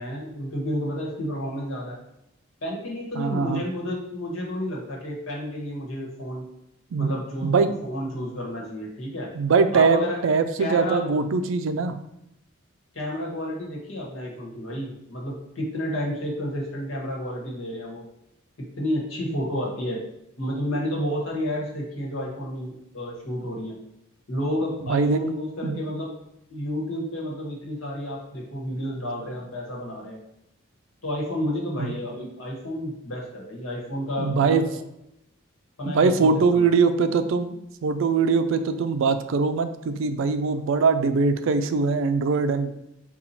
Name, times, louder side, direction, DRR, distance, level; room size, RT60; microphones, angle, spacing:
voice 1, 0.0-2.0 2.6-6.5 7.0-9.3 9.7-10.2 10.6-11.1 12.9-18.0 18.6-20.0 20.4-23.8 24.3-26.1 26.5-30.2 31.0-34.6 35.8-36.7, equal, 85° left, -2 dB, 1.2 m, -31 dB
voice 2, 3.2-3.6 6.9-7.1 7.4-7.7 9.4-11.9 24.8-25.2 25.6-25.8 31.8-31.9 34.2-34.6 35.9-37.6 37.8-42.7, right 4 dB, 75° right, 10 dB, 0.3 m, -22 dB
4.2 x 2.3 x 4.1 m, 0.82 s
head